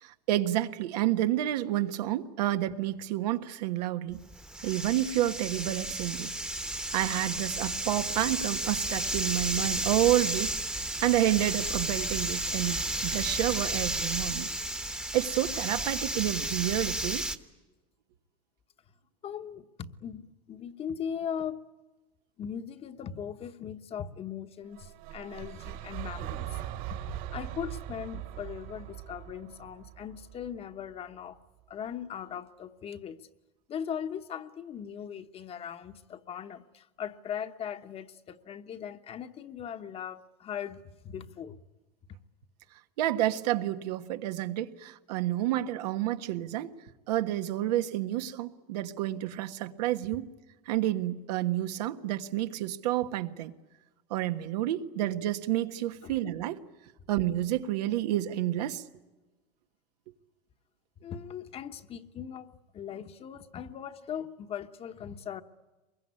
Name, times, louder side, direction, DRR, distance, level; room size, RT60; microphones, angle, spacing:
voice 1, 0.0-4.2 4.6-6.3 6.6-10.6 11.0-14.5 15.1-17.2 43.0-46.7 47.1-50.3 50.6-53.5 54.1-56.6 57.1-58.8, right 13 dB, 85° right, 8 dB, 1.5 m, -29 dB
sound 1, 4.1-17.4, right 1 dB, 5° right, 1.1 m, -33 dB
voice 2, 19.2-21.6 22.4-26.6 26.9-31.4 31.7-33.3 33.7-41.6 56.0-56.2 61.0-65.4, left 8 dB, 30° left, 10 dB, 1.1 m, -39 dB
sound 2, 24.7-30.9, right 13 dB, 65° right, 2.9 m, -40 dB
24.0 x 22.0 x 9.7 m, 1.2 s
supercardioid pair, 140°, 20 cm